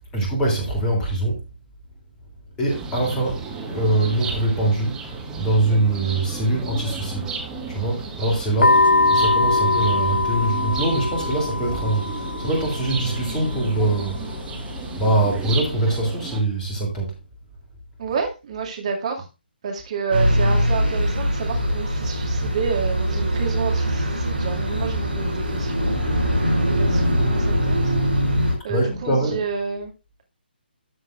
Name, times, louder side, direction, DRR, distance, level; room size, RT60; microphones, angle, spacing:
voice 1, 0.1-1.4 2.6-5.1 5.4-7.3 7.7-8.8 9.1-14.4 15.0-17.1 18.1-18.2 28.7-29.5, right 2 dB, 15° left, 3.1 m, -23 dB
sound 1, 2.7-16.4, right 4 dB, 10° right, 1.5 m, -33 dB
sound 2, 8.6-15.6, left 3 dB, 70° left, 0.5 m, -23 dB
voice 2, 18.0-19.3 19.6-26.0 26.6-27.9 28.6-29.9, right 5 dB, 40° right, 2.4 m, -29 dB
sound 3, 20.1-28.5, equal, 65° right, 6.4 m, -22 dB
12.5 x 7.1 x 2.5 m
figure-of-eight pair, 140°, 6 cm